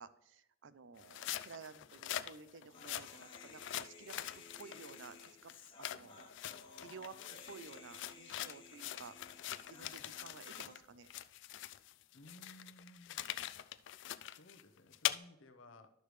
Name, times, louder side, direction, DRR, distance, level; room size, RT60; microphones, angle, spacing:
voice 1, 0.0-5.5 5.8-6.5 6.8-9.2 9.7-11.1, right 5 dB, 70° right, 13 dB, 0.5 m, -54 dB
sound 1, 1.0-10.8 11.1-15.2, left 13 dB, 65° left, 0.3 m, -44 dB
Human voice, 2.7-10.7, left 4 dB, 25° left, 1.1 m, -57 dB
voice 2, 12.1-13.2 14.3-15.9, left 1 dB, 80° left, 8 dB, 0.8 m, -58 dB
11.5 x 6.6 x 3.2 m, 0.81 s
head